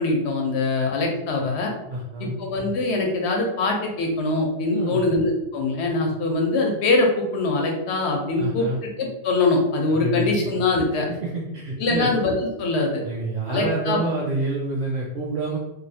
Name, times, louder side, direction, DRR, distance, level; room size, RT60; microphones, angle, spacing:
voice 1, 0.0-1.7 2.2-11.1 11.8-12.3 12.6-13.0 13.5-14.0, left 2 dB, 85° left, 1 dB, 1.0 m, -23 dB
voice 2, 1.9-2.4 4.7-5.1 8.4-8.8 9.9-10.4 11.2-12.1 13.0-15.6, right 2 dB, 65° right, -5 dB, 0.8 m, -27 dB
3.0 x 2.5 x 2.7 m, 0.93 s
omnidirectional pair, 1.1 m